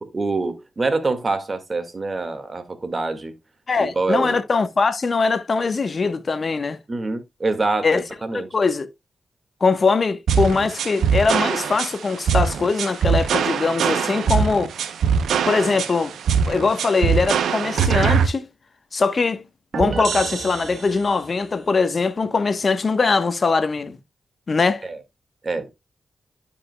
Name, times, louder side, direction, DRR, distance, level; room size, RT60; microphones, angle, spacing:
voice 1, 0.0-3.3 3.8-4.4 6.9-8.5 24.9-25.0 25.4-25.7, right 3 dB, 40° right, 1.8 m, -25 dB
voice 2, 3.7-6.8 7.8-8.0 8.3-8.9 9.6-14.7 15.5-16.2 16.4-18.5 18.9-19.4 19.7-24.0 24.5-24.9, left 4 dB, 50° left, 1.0 m, -21 dB
sound 1, 10.3-18.3, right 7 dB, 90° right, 0.7 m, -21 dB
sound 2, 19.7-21.4, right 6 dB, 70° right, 0.3 m, -29 dB
12.0 x 5.1 x 2.2 m
cardioid pair, 55°, 0 cm